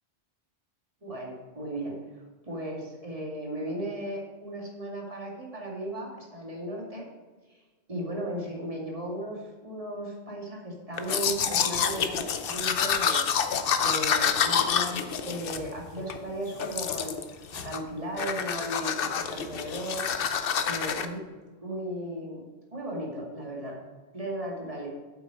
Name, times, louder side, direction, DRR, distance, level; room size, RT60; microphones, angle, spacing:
voice 1, 1.0-1.9 2.4-7.1 7.5-7.6 7.9-17.2 17.5-20.1 20.6-21.2 21.6-22.4 22.7-23.7 24.1-24.9, right 1 dB, 30° right, -2 dB, 2.3 m, -36 dB
Domestic sounds home sounds, 11.0-16.2 16.6-17.2 17.5-17.9 18.2-21.1, left 7 dB, 60° left, 0.8 m, -28 dB
8.4 x 7.4 x 5.0 m, 1.3 s
omnidirectional pair, 1.1 m